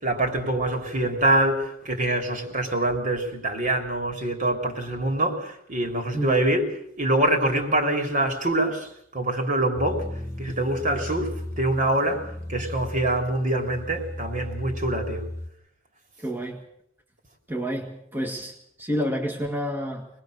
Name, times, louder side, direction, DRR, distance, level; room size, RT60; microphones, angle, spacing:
voice 1, 0.0-6.6 7.0-10.1 10.4-15.3, right 1 dB, 40° right, 4 dB, 3.6 m, -25 dB
sound 1, 9.8-15.5, left 1 dB, 15° left, 1.2 m, -35 dB
voice 2, 16.2-16.6 17.5-20.1, equal, 10° right, -1 dB, 1.9 m, -29 dB
25.5 x 20.0 x 6.6 m, 0.71 s
head